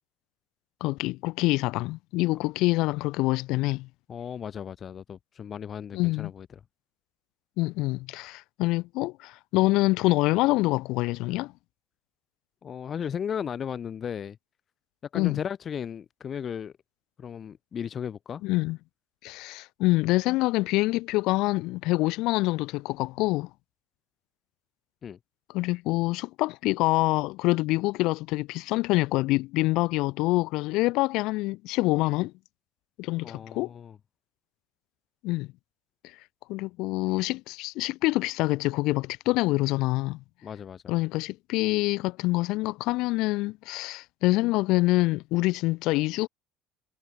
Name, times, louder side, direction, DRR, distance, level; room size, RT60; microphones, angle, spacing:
voice 1, 0.8-3.9 5.9-6.3 7.6-11.5 15.1-15.4 18.4-18.8 19.2-23.5 25.5-32.3 33.0-33.7 35.2-35.5 36.5-40.2 40.9-46.3, left 20 dB, 60° left, 1.0 m, -26 dB
voice 2, 4.1-6.5 12.6-14.4 15.1-16.7 17.2-18.4 25.0-25.2 33.2-34.0 40.4-41.0, left 8 dB, 25° left, 0.7 m, -35 dB
cardioid pair, 160°, 0 cm